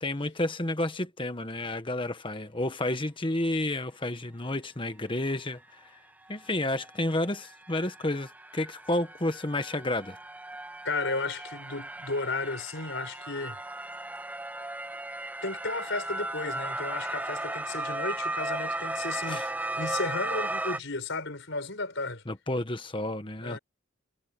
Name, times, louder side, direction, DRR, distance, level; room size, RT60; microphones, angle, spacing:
voice 1, 0.0-5.6 6.3-10.2 19.3-19.5 22.3-23.6, left 1 dB, 25° left, 1.4 m, -31 dB
sound 1, 6.3-6.4 6.7-20.8, right 2 dB, 10° right, 0.7 m, -36 dB
voice 2, 10.8-13.6 15.4-22.2 23.4-23.6, left 3 dB, 65° left, 6.2 m, -34 dB
head